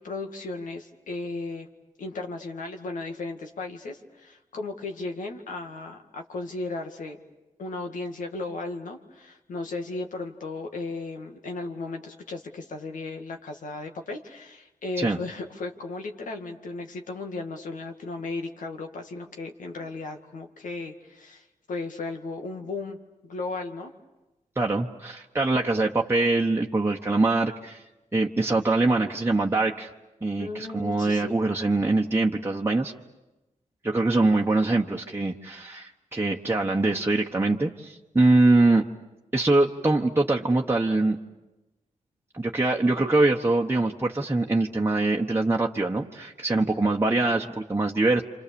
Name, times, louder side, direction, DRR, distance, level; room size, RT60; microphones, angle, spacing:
voice 1, 0.0-1.7 2.0-7.2 7.6-23.0 23.2-23.9 30.4-31.4, left 3 dB, 85° left, 4 dB, 2.1 m, -35 dB
voice 2, 24.6-27.8 28.1-29.9 30.2-32.9 33.8-38.8 39.3-41.2 42.3-48.2, right 2 dB, 20° right, -1 dB, 1.3 m, -23 dB
29.0 x 26.5 x 7.1 m, 1.0 s
cardioid pair, 60°, 13 cm